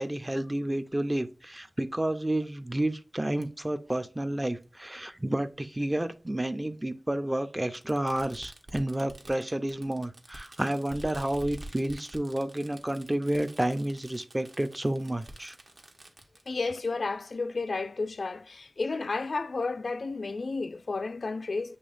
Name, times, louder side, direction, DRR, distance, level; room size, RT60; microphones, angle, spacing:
voice 1, 0.0-15.6, right 1 dB, 20° right, 0.5 m, -30 dB
Fireworks, 3.4-3.5 4.6-4.7 6.0-6.1 7.7-16.5, right 1 dB, 55° right, 1.0 m, -48 dB
voice 2, 16.5-21.8, left 3 dB, 70° left, 0.3 m, -32 dB
6.8 x 3.1 x 2.5 m
wide cardioid pair, 60°, 0 cm